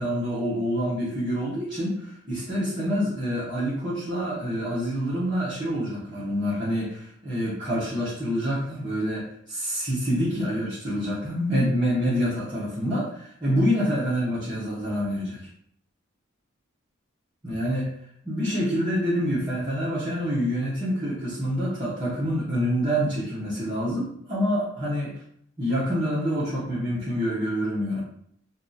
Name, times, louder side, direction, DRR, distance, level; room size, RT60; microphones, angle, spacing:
voice 1, 0.0-15.4 17.4-17.9 18.2-25.1 25.6-28.0, equal, 20° right, -11 dB, 0.9 m, -27 dB
2.7 x 2.4 x 3.8 m, 0.66 s
head